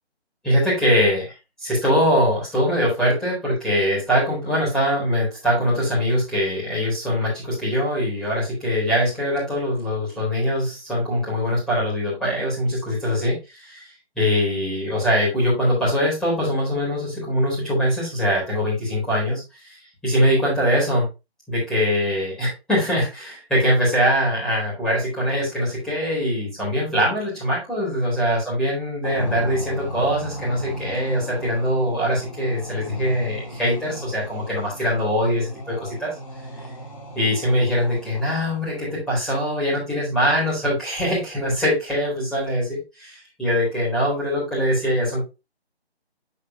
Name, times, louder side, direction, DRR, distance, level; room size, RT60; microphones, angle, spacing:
voice 1, 0.4-1.3 1.6-13.9 14.2-19.8 20.0-21.1 21.5-36.1 37.2-45.2, equal, ahead, -9 dB, 3.9 m, -22 dB
sound 1, 29.0-38.9, equal, 30° left, 1.9 m, -36 dB
8.7 x 5.7 x 2.9 m, 0.27 s
figure-of-eight pair, 165°, 33 cm